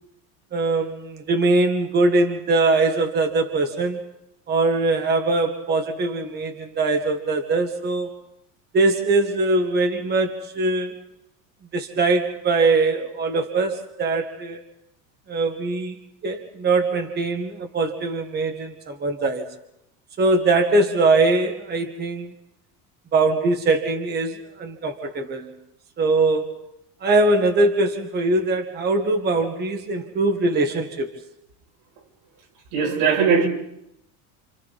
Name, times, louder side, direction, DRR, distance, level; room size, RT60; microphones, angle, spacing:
voice 1, 0.5-4.0 4.5-8.1 8.7-11.0 11.7-14.6 15.3-15.9 16.2-19.5 20.2-22.3 23.1-25.5 26.0-26.7 27.0-31.1, right 2 dB, 20° right, 1.6 m, -22 dB
voice 2, 32.7-33.5, right 6 dB, 85° right, 7.6 m, -19 dB
29.0 x 28.5 x 4.2 m
cardioid pair, 165°, 43 cm